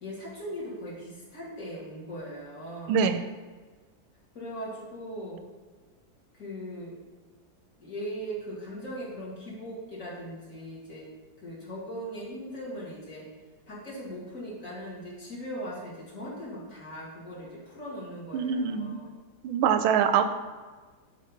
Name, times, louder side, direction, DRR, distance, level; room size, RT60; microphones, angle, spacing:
voice 1, 0.0-3.0 4.3-5.4 6.4-6.9 7.8-11.1 11.4-13.2 13.7-19.1, equal, 45° left, -6 dB, 2.2 m, -39 dB
voice 2, 2.9-3.2 18.3-19.0 19.4-20.2, right 7 dB, 85° right, 8 dB, 1.4 m, -24 dB
6.4 x 4.4 x 5.2 m, 1.4 s
omnidirectional pair, 2.1 m